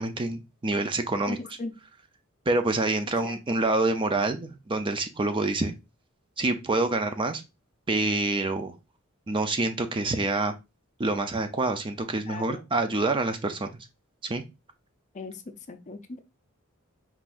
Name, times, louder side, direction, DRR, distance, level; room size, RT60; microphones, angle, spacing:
voice 1, 0.0-1.4 2.5-5.7 6.4-7.4 7.9-8.8 9.3-10.5 11.0-13.7 14.2-14.4, right 2 dB, 25° right, 7 dB, 0.5 m, -27 dB
voice 2, 1.3-1.7 3.2-3.4 12.3-12.6 15.1-15.4 15.7-16.2, left 3 dB, 35° left, 8 dB, 0.5 m, -37 dB
4.5 x 3.8 x 2.5 m, 0.25 s
head